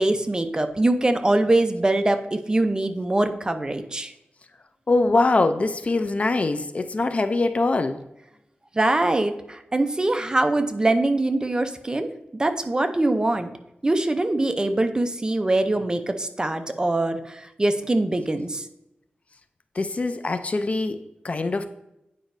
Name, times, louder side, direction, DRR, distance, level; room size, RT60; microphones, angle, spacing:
voice 1, 0.0-4.1 8.8-12.1 12.4-13.5 13.8-18.7, right 2 dB, 20° right, 0.5 m, -23 dB
voice 2, 4.9-8.0 19.8-21.7, left 3 dB, 40° left, 0.4 m, -23 dB
8.9 x 5.1 x 2.6 m
wide cardioid pair, 115°, 3 cm